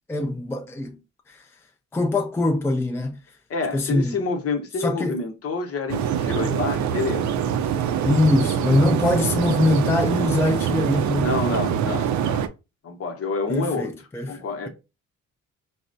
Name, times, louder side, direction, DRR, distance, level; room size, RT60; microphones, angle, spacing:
voice 1, 0.1-1.0 1.3-1.4 1.9-3.2 3.7-4.2 4.8-5.2 8.0-11.4 11.9-12.0 13.5-14.7, left 2 dB, 10° left, 0.4 m, -23 dB
voice 2, 3.5-7.3 11.2-12.4 12.8-13.9 14.3-14.7, left 4 dB, 50° left, 0.9 m, -28 dB
sound 1, 5.9-12.5, right 8 dB, 70° right, 0.5 m, -24 dB
4.2 x 2.1 x 2.6 m
cardioid pair, 90°, 30 cm